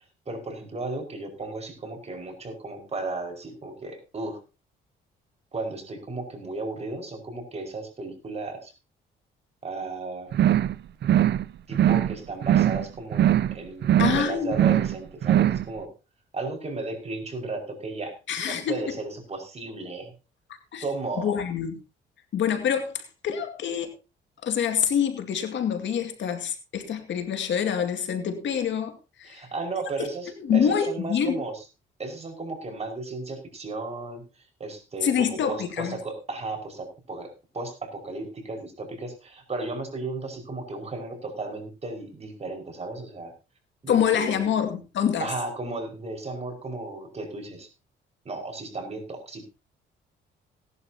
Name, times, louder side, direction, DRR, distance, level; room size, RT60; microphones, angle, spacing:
voice 1, 0.3-4.4 5.5-8.7 9.6-10.3 11.7-15.9 16.3-20.1 20.8-21.3 29.3-31.6 32.0-43.3 43.8-44.5 45.2-47.7 48.3-49.5, right 3 dB, 30° right, 2 dB, 5.4 m, -35 dB
sound 1, 10.3-10.8 11.0-11.4 11.7-12.2 12.4-12.9 13.1-13.6 13.8-14.2 14.5-15.0 15.2-15.6, right 11 dB, 60° right, 0.6 m, -21 dB
voice 2, 14.0-14.5 18.3-18.8 20.7-20.8 21.2-21.7 22.3-24.0 24.4-29.4 30.4-31.4 35.0-36.0 43.9-45.3, left 8 dB, 65° left, 6 dB, 2.2 m, -26 dB
18.0 x 11.5 x 2.8 m, 0.30 s
cardioid pair, 90°, 20 cm